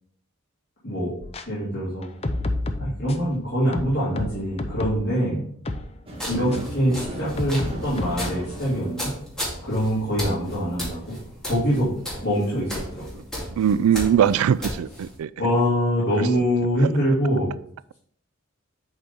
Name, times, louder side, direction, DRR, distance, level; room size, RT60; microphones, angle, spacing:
sound 1, 1.2-1.4 2.0-3.3 3.7-5.1 5.6-5.9 6.5-6.6 7.4-8.3, left 2 dB, 30° left, 0.5 m, -30 dB
voice 1, 1.5-2.1 2.8-5.4 6.2-9.1 9.6-11.2 11.4-11.9 12.2-13.1 15.4-17.5, equal, 50° left, 2.3 m, -24 dB
sound 2, 6.1-15.2, equal, 5° left, 2.3 m, -35 dB
sound 3, 6.1-11.1, equal, 25° right, 1.4 m, -39 dB
voice 2, 6.3-6.7 13.5-15.3 16.8-16.9, right 9 dB, 80° right, 0.3 m, -21 dB
7.9 x 4.2 x 3.6 m
head